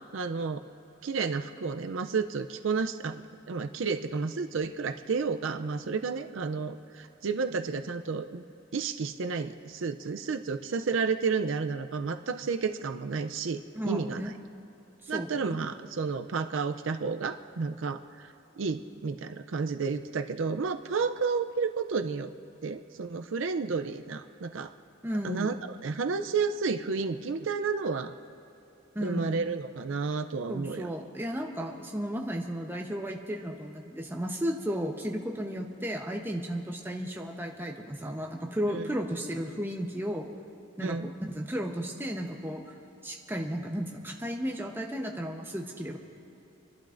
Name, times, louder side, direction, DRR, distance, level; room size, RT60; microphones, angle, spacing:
voice 1, 0.1-0.6 1.0-8.4 8.7-14.2 15.1-18.3 18.6-22.3 22.6-24.7 25.2-25.5 25.8-28.1 29.0-30.9 38.7-38.8 40.8-41.1, right 5 dB, 75° right, 9 dB, 0.5 m, -31 dB
voice 2, 13.7-14.3 15.0-15.7 25.0-25.5 28.9-29.4 30.5-40.3 40.8-41.0 41.3-42.6 43.0-46.0, equal, 10° right, 1 dB, 0.8 m, -34 dB
29.0 x 11.5 x 2.6 m, 3.0 s
head